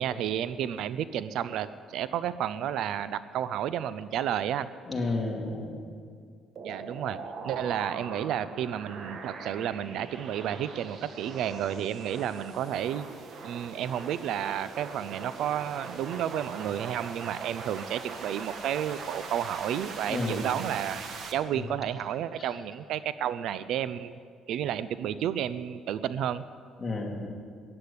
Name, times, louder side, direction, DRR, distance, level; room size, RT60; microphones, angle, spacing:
voice 1, 0.0-4.7 6.6-13.1 13.4-24.2 24.5-26.4, right 10 dB, 70° right, 15 dB, 0.5 m, -31 dB
voice 2, 4.9-5.8 20.1-20.4 21.5-21.7 22.4-22.5 26.8-27.3, left 3 dB, 20° left, 0 dB, 2.5 m, -32 dB
sound 1, 6.6-21.3, right 4 dB, 50° right, 1.5 m, -41 dB
15.0 x 9.8 x 8.5 m, 2.1 s
cardioid pair, 130°, 0 cm